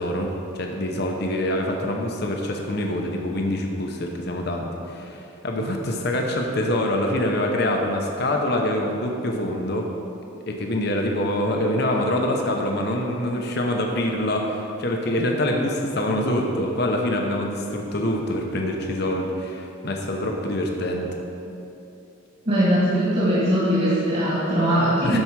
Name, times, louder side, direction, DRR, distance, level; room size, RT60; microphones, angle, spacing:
voice 1, 0.0-9.9 10.5-21.2 25.0-25.2, left 1 dB, 50° left, 1 dB, 0.8 m, -25 dB
voice 2, 22.4-25.2, equal, 40° right, -9 dB, 2.2 m, -20 dB
13.0 x 4.8 x 4.7 m, 2.8 s
head